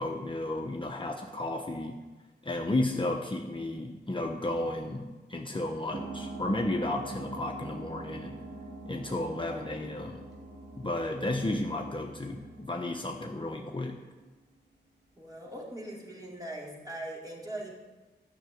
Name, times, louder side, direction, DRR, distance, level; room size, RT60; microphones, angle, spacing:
voice 1, 0.0-2.0 2.4-8.4 8.8-10.2 10.8-14.0, left 1 dB, 25° left, 2 dB, 1.1 m, -33 dB
sound 1, 5.9-14.1, right 2 dB, 65° right, 3.0 m, -44 dB
voice 2, 15.2-17.7, right 1 dB, 20° right, -4 dB, 4.4 m, -40 dB
13.0 x 6.8 x 9.2 m, 1.2 s
wide cardioid pair, 70°, 19 cm